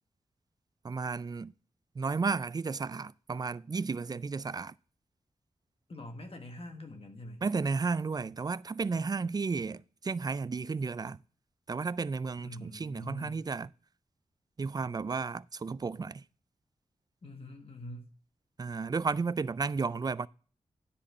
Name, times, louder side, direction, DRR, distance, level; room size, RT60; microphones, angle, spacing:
voice 1, 0.8-1.5 2.0-4.7 7.4-11.2 11.7-13.7 14.6-16.2 18.6-20.3, right 4 dB, 35° right, 0.3 m, -33 dB
voice 2, 5.9-7.4 12.4-13.4 17.2-18.1, left 1 dB, 50° left, 1.5 m, -45 dB
9.8 x 4.3 x 6.6 m
cardioid pair, 55°, 12 cm